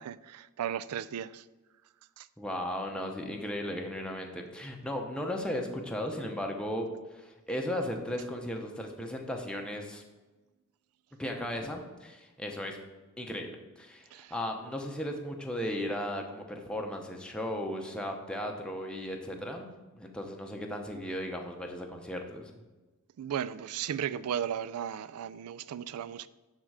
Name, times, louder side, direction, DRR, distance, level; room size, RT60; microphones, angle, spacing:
voice 1, 0.0-1.4 2.2-2.3 14.1-14.3 23.2-26.3, right 9 dB, 85° right, 0.3 m, -35 dB
voice 2, 2.4-10.0 11.2-12.8 13.2-13.5 13.8-22.5, left 1 dB, 5° left, 0.7 m, -36 dB
10.5 x 3.7 x 4.7 m
head